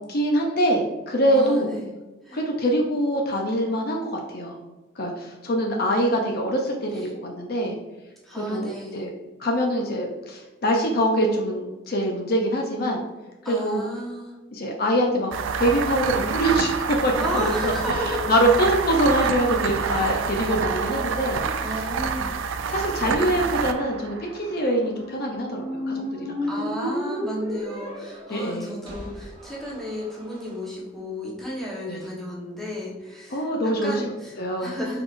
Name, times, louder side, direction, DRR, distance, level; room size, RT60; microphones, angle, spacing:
voice 1, 0.1-1.7 2.3-4.6 5.0-7.8 8.3-9.1 9.4-13.0 13.4-13.9 14.5-15.3 15.6-21.4 22.1-22.3 22.7-26.4 28.3-28.7 31.8-32.1 33.3-34.0 34.4-34.8, equal, 55° left, 1 dB, 0.6 m, -24 dB
voice 2, 1.3-1.9 2.2-2.4 8.2-9.0 13.4-14.4 17.2-18.3 19.2-19.3 20.0-20.2 21.3-22.3 26.5-35.0, left 1 dB, ahead, -6 dB, 1.1 m, -33 dB
sound 1, 15.3-24.7, right 5 dB, 85° right, 0.4 m, -27 dB
Squeak, 24.6-30.5, equal, 25° right, 1.3 m, -34 dB
4.7 x 4.1 x 2.5 m, 1.2 s
head